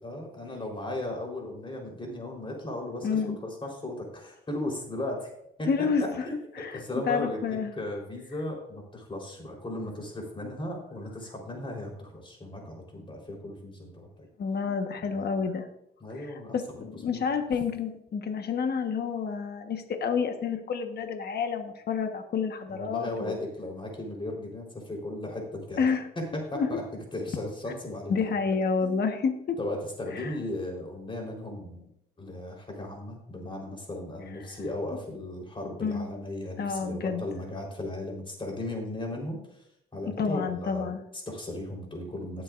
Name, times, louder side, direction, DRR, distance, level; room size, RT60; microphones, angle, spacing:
voice 1, 0.0-5.3 5.6-7.4 7.7-14.3 15.0-15.3 16.0-16.8 17.1-17.2 22.7-25.9 26.3-28.3 29.6-31.8 32.2-39.4 39.9-40.9 41.1-42.4, left 1 dB, 25° left, 0 dB, 3.9 m, -36 dB
voice 2, 3.0-3.4 5.7-6.2 6.5-7.7 14.4-15.7 16.1-23.4 25.8-26.0 26.5-26.7 28.1-29.6 30.1-30.4 35.8-36.1 36.6-37.2 40.0-41.0, left 5 dB, 55° left, 6 dB, 1.3 m, -29 dB
17.5 x 7.8 x 2.5 m, 0.77 s
cardioid pair, 90°, 20 cm